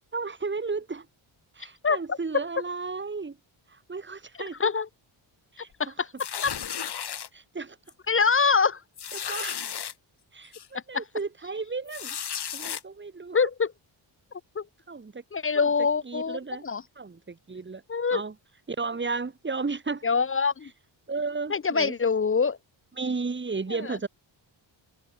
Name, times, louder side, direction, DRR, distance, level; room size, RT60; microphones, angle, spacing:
voice 1, 0.1-1.1 1.6-3.4 3.7-4.7 5.5-5.7 7.3-7.8 9.1-9.6 10.3-12.2 12.5-13.4 14.9-15.2 16.1-16.6 17.0-17.8 18.1-18.3 18.8-20.1 21.1-21.9 23.0-24.1, right 4 dB, 25° right, 6.2 m, -33 dB
voice 2, 1.8-2.2 4.6-4.9 5.8-6.5 8.1-8.8 10.7-11.0 13.3-13.7 14.5-14.7 15.3-16.8 17.9-18.2 20.0-20.7 21.5-22.6 23.7-24.0, left 5 dB, 30° left, 0.7 m, -25 dB
sound 1, 6.2-7.3 7.9-8.1 8.3-8.4 9.0-9.9 10.5-10.7 11.9-12.8, left 8 dB, 55° left, 6.9 m, -34 dB
wide cardioid pair, 180°, 46 cm